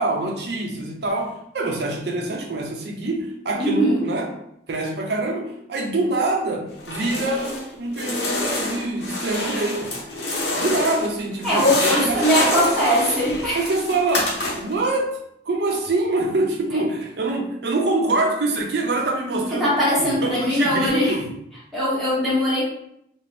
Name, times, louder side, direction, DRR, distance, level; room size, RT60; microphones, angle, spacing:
voice 1, 0.0-4.3 4.7-9.9 10.6-13.0 13.5-15.2 15.5-21.3, right 2 dB, 75° right, 1 dB, 0.5 m, -25 dB
voice 2, 3.5-4.1 11.4-13.6 19.4-21.2 21.7-22.7, equal, ahead, -9 dB, 0.8 m, -20 dB
sound 1, 6.8-7.7 7.9-11.1 11.4-14.8, left 2 dB, 70° left, 0.7 m, -27 dB
2.6 x 2.0 x 3.2 m, 0.74 s
head